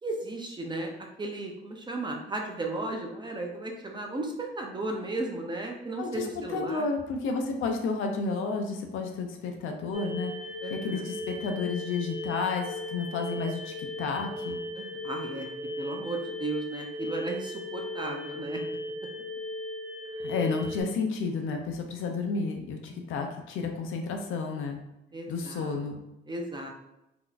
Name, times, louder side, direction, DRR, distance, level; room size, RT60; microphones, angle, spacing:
voice 1, 0.0-6.9 10.6-11.0 14.7-15.5 15.8-18.6 22.9-23.0 25.1-25.8 26.3-26.7, right 2 dB, 20° right, 1 dB, 0.7 m, -35 dB
voice 2, 6.0-10.3 10.7-14.6 20.2-24.8 25.3-26.0, left 4 dB, 85° left, 3 dB, 0.6 m, -31 dB
sound 1, 9.9-20.8, left 1 dB, 35° left, 0.7 m, -37 dB
3.8 x 2.9 x 2.4 m, 0.90 s
cardioid pair, 90°, 20 cm